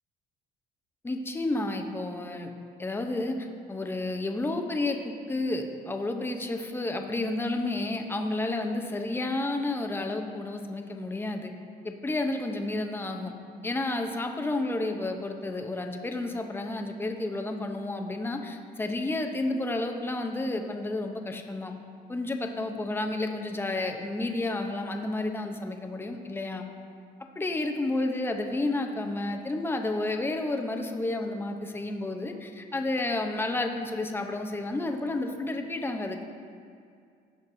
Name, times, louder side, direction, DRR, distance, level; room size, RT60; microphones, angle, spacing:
voice 1, 1.0-2.5 2.8-3.3 3.7-11.5 11.8-13.3 13.6-21.7 22.1-26.6 27.4-36.2, left 2 dB, 15° left, 4 dB, 0.7 m, -31 dB
16.0 x 5.9 x 2.7 m, 2.3 s
cardioid pair, 110°, 17 cm